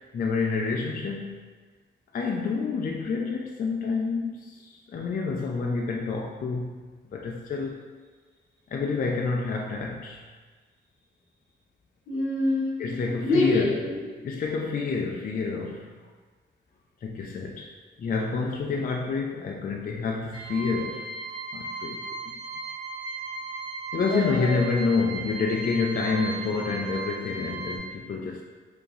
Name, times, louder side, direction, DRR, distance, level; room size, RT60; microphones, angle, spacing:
voice 1, 0.1-1.4 2.1-6.8 7.1-7.8 8.7-10.2 12.8-13.7 14.2-15.9 17.0-17.7 18.0-21.1 21.5-22.0 22.3-22.4 23.9-28.4, left 4 dB, 45° left, -1 dB, 0.4 m, -28 dB
voice 2, 12.1-14.0 23.9-24.6, left 2 dB, 80° left, -4 dB, 1.0 m, -26 dB
sound 1, 20.3-27.8, right 3 dB, 25° left, 0.9 m, -36 dB
2.9 x 2.6 x 3.8 m, 1.4 s
cardioid pair, 95°, 21 cm